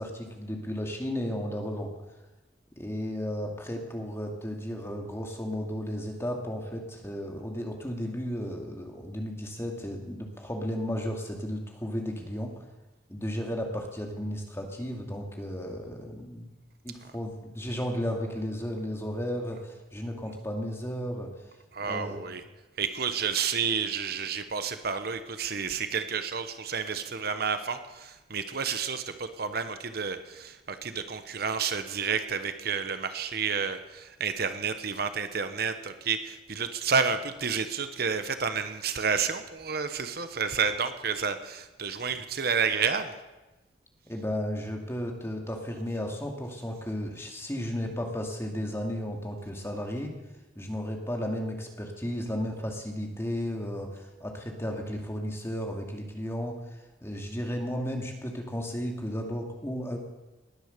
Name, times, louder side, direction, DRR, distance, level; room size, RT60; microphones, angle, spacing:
voice 1, 0.0-1.9 2.8-12.6 13.1-16.5 16.8-21.3 21.8-22.3 44.1-50.1 50.6-60.0, equal, 15° left, 2 dB, 2.3 m, -34 dB
voice 2, 21.7-22.4 22.8-43.2, right 6 dB, 60° right, 10 dB, 1.0 m, -30 dB
19.5 x 9.9 x 6.8 m, 1.1 s
head